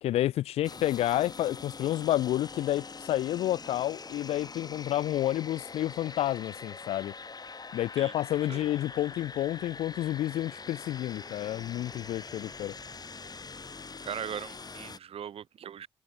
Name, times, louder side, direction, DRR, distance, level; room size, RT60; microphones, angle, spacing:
voice 1, 0.0-7.1 7.7-12.7, left 13 dB, 85° left, 0.9 m, -30 dB
sound 1, 0.6-15.0, left 4 dB, 40° left, 4.5 m, -44 dB
voice 2, 14.0-15.9, right 9 dB, 70° right, 7.3 m, -39 dB
supercardioid pair, 50°, 10 cm